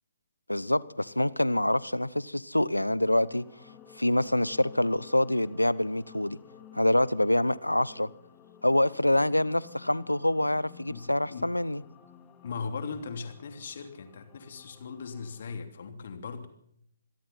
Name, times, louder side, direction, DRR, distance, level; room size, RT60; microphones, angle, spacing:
voice 1, 0.5-3.5 4.0-6.4 6.7-8.1 8.6-11.8, left 1 dB, 90° left, 0.9 m, -26 dB
sound 1, 3.2-15.6, left 9 dB, 20° left, 2.5 m, -53 dB
voice 2, 10.9-11.5 12.4-16.5, left 5 dB, 55° left, 3.1 m, -39 dB
26.0 x 21.5 x 5.8 m
figure-of-eight pair, 130°, 0 cm